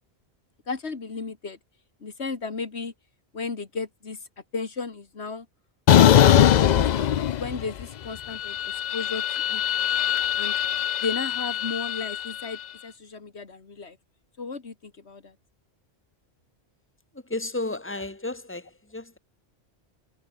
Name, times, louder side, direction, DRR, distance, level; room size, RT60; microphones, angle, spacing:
voice 1, 0.7-1.6 2.0-2.9 3.3-4.2 4.5-5.5 6.2-9.2 9.5-9.6 10.3-10.6 11.0-14.0 14.4-15.4, left 4 dB, 85° left, 2.3 m, -34 dB
sound 1, 5.9-7.8 8.2-12.5, left 10 dB, 55° left, 0.5 m, -21 dB
voice 2, 17.1-19.2, left 2 dB, 10° left, 2.0 m, -33 dB
omnidirectional pair, 1.1 m